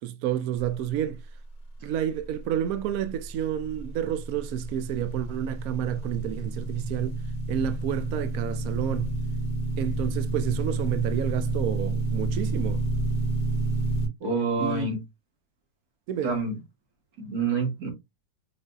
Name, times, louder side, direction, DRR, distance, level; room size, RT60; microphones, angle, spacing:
voice 1, 0.0-1.2 1.8-7.2 7.5-9.2 9.8-12.8 14.6-14.9 16.1-16.4, right 10 dB, 75° right, 0.8 m, -30 dB
sound 1, 3.2-14.1, right 2 dB, 30° left, 1.0 m, -30 dB
voice 2, 14.2-15.0 16.2-16.6 17.2-17.9, right 4 dB, 50° right, 2.3 m, -27 dB
5.1 x 4.0 x 2.3 m
omnidirectional pair, 2.0 m